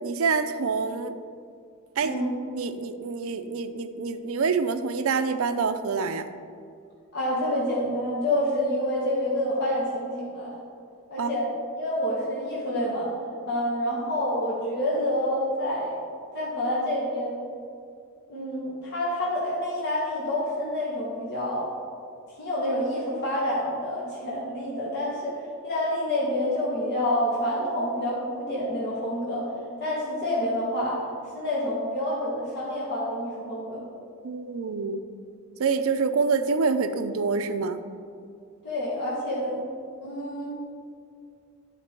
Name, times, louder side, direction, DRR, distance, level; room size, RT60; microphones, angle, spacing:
voice 1, 0.0-1.1 2.0-2.1 2.5-6.2 11.2-11.3 34.2-35.0 35.6-37.8, right 5 dB, 70° right, 9 dB, 0.5 m, -26 dB
voice 2, 2.0-2.3 7.1-10.5 11.1-11.5 11.7-13.1 13.5-16.0 16.3-17.4 18.3-21.7 22.4-29.5 29.8-31.0 31.3-33.8 38.6-39.6 40.0-40.6, left 1 dB, 50° left, -7 dB, 1.4 m, -28 dB
9.6 x 4.5 x 4.4 m, 2.4 s
head